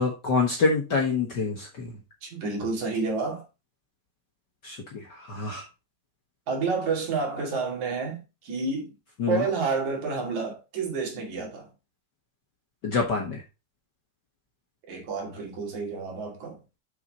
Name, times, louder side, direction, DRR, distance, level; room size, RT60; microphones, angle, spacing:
voice 1, 0.0-1.9 4.6-5.6 9.2-9.4 12.8-13.4, left 4 dB, 45° left, 1.5 m, -26 dB
voice 2, 2.2-3.4 6.5-8.9 9.3-11.7 14.9-16.6, right 4 dB, 75° right, 3.8 m, -29 dB
7.1 x 5.8 x 4.1 m
omnidirectional pair, 3.4 m